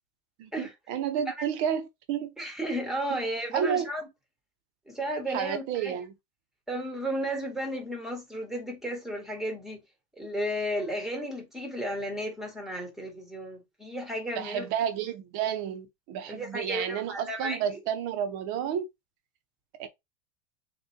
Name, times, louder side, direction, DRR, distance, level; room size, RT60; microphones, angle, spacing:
voice 1, 0.4-2.3 3.5-3.9 5.3-6.1 14.3-18.8 19.8-19.9, right 8 dB, 45° right, 0.9 m, -31 dB
voice 2, 2.4-4.1 4.9-5.9 6.7-9.8 10.2-14.6 16.3-17.6, right 1 dB, ahead, 1.4 m, -33 dB
6.5 x 2.6 x 2.8 m
supercardioid pair, 140°, 42 cm